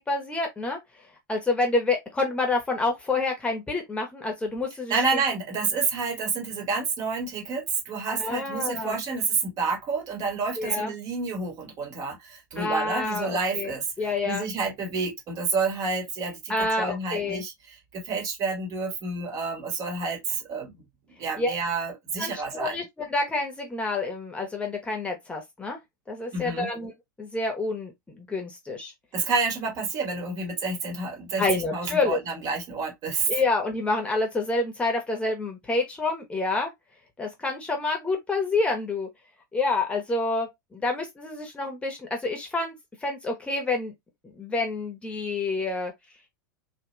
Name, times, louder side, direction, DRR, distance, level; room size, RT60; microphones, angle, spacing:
voice 1, 0.1-0.8 1.3-4.9 8.1-9.0 10.6-10.9 12.6-14.4 16.5-17.4 21.4-21.5 22.2-25.8 26.1-26.9 27.2-28.9 31.4-32.2 33.3-36.7 37.2-39.1 39.5-42.7 43.0-43.9 44.4-45.9, left 3 dB, 10° left, 1.1 m, -28 dB
voice 2, 4.9-20.7 21.2-22.8 26.3-26.7 29.1-33.4, right 4 dB, 35° right, 1.2 m, -29 dB
2.9 x 2.4 x 3.0 m
figure-of-eight pair, 90°, 11 cm